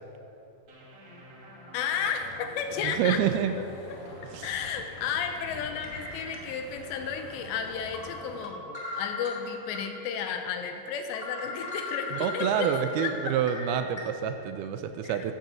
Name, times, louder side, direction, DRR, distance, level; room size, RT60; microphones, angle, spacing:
sound 1, 0.7-10.0, equal, 55° right, 3.3 m, -49 dB
voice 1, 1.7-3.2 3.9-4.0 4.4-8.6 9.0-12.7 13.0-13.4 15.0-15.2, left 7 dB, 85° left, 6 dB, 3.0 m, -33 dB
Truck, 2.1-8.4, left 3 dB, 60° left, 3.4 m, -49 dB
sound 2, 2.3-2.5 2.9-3.0 4.2-4.4 5.8-6.9 7.3-7.4 7.9-9.8 10.2-10.3 10.7-10.8 11.1-14.0, left 3 dB, 25° left, 0.7 m, -38 dB
voice 2, 2.8-3.5 4.3-4.5 12.1-15.3, right 9 dB, 85° right, 8 dB, 2.3 m, -28 dB
12.0 x 8.3 x 7.6 m, 2.9 s
omnidirectional pair, 5.0 m